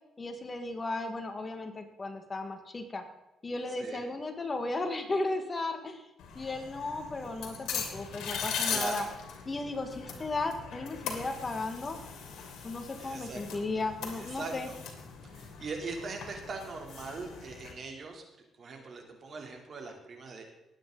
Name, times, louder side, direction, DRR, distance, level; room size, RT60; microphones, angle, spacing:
voice 1, 0.2-3.0 3.4-6.1 6.4-9.0 9.5-12.0 12.6-14.7, left 2 dB, 30° left, 6 dB, 1.6 m, -35 dB
sound 1, 6.2-17.7, left 6 dB, 85° left, 2.8 m, -40 dB
voice 2, 8.7-9.1 13.0-13.6 14.2-14.8 15.2-18.2 18.6-20.4, right 4 dB, 50° right, 2 dB, 3.1 m, -41 dB
19.5 x 8.9 x 3.9 m, 0.99 s
cardioid pair, 90°, 0 cm